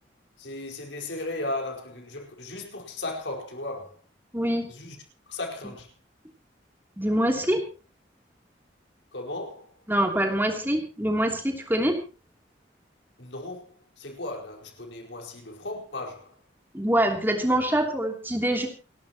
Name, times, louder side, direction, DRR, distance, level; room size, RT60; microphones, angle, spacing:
voice 1, 0.4-4.0 4.7-5.0 5.3-5.9 9.1-9.7 13.2-16.3, left 2 dB, 75° left, 4.8 m, -36 dB
voice 2, 4.3-4.7 7.0-7.6 9.9-12.0 16.7-18.7, right 1 dB, 10° right, 3.1 m, -24 dB
29.5 x 12.0 x 3.0 m
head